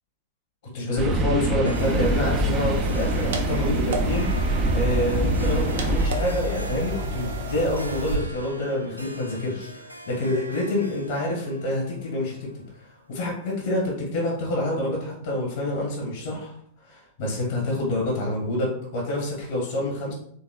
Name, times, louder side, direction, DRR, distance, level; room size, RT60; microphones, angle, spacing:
voice 1, 0.7-12.4 12.8-16.5 16.8-20.1, left 1 dB, 55° left, -3 dB, 1.7 m, -27 dB
sound 1, 1.0-6.1, right 2 dB, 30° right, 0.6 m, -25 dB
Harp, 1.6-13.4, right 1 dB, 90° right, 0.5 m, -42 dB
sound 2, 1.8-8.1, left 1 dB, 60° right, 0.8 m, -30 dB
4.6 x 3.8 x 2.3 m, 0.66 s
figure-of-eight pair, 95°, 0 cm